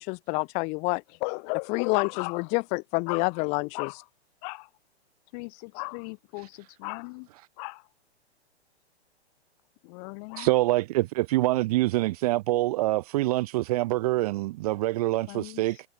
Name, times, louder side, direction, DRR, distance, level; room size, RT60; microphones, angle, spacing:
voice 1, 0.0-1.0 1.7-3.9, left 30 dB, 20° left, 0.4 m, -28 dB
voice 2, 1.2-2.5 3.1-3.3 3.7-4.0 4.4-4.7 5.3-7.3 7.6-7.9 9.8-10.5 15.2-15.8, left 35 dB, 40° left, 2.1 m, -36 dB
voice 3, 10.4-15.8, right 18 dB, 35° right, 0.5 m, -25 dB
figure-of-eight pair, 115°, 33 cm